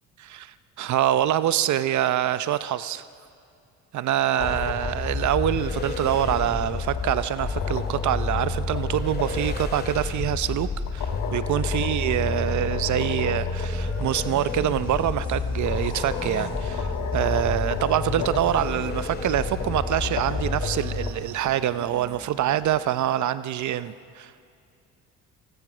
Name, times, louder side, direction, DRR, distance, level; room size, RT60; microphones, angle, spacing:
voice 1, 0.2-3.0 3.9-24.5, right 12 dB, 60° right, 14 dB, 0.7 m, -25 dB
sound 1, 4.2-5.3 6.4-9.3 10.9-13.7 14.0-14.1 15.1-15.2 15.7-18.6 19.4-21.1, left 7 dB, 65° left, 2.3 m, -36 dB
sound 2, 4.4-21.1, left 4 dB, 30° left, 2.1 m, -29 dB
sound 3, 13.7-22.9, left 1 dB, 5° left, 7.5 m, -45 dB
27.5 x 19.0 x 6.2 m, 2.4 s
supercardioid pair, 80°, 34 cm